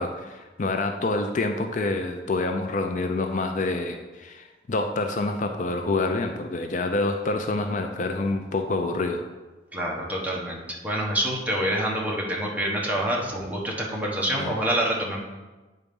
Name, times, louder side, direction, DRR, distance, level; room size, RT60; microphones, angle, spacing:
voice 1, 0.0-9.2 14.4-14.5, left 2 dB, 45° left, 5 dB, 0.5 m, -27 dB
voice 2, 9.7-15.2, right 1 dB, 10° right, -3 dB, 1.1 m, -27 dB
8.5 x 3.9 x 5.3 m, 1.2 s
head